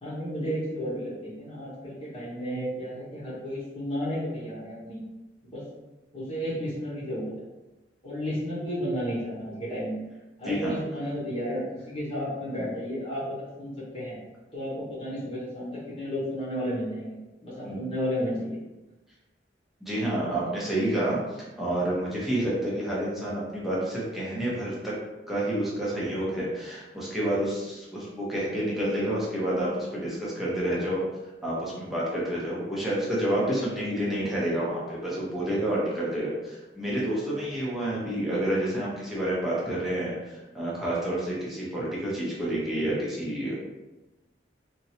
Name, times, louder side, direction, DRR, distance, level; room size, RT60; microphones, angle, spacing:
voice 1, 0.0-5.0 5.4-5.6 6.1-7.3 8.0-9.9 10.4-14.2 14.5-17.2 17.4-18.6, equal, 30° left, -10 dB, 1.2 m, -32 dB
voice 2, 10.5-10.8 17.6-17.8 19.8-21.2 21.6-24.9 25.3-31.0 31.4-40.1 40.5-43.6, right 1 dB, ahead, -8 dB, 0.9 m, -29 dB
3.0 x 2.8 x 2.8 m, 1.1 s
head